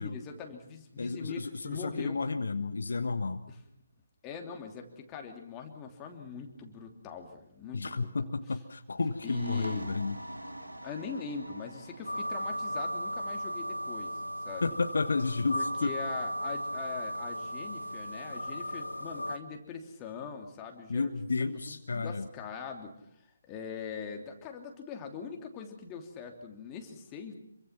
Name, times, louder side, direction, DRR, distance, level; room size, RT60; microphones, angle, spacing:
voice 1, 0.0-2.2 3.5-3.6 4.2-8.1 9.2-9.9 10.8-14.7 15.5-21.1 21.5-27.3, left 6 dB, 15° left, 3 dB, 3.0 m, -42 dB
voice 2, 1.0-3.4 7.7-10.2 14.6-15.9 20.9-22.3, left 4 dB, 55° left, 8 dB, 1.3 m, -32 dB
sound 1, 9.0-16.4, right 1 dB, 80° right, 3.2 m, -47 dB
sound 2, 12.1-19.4, equal, 80° left, 1.2 m, -36 dB
27.0 x 24.0 x 5.9 m, 0.70 s
figure-of-eight pair, 145°, 0 cm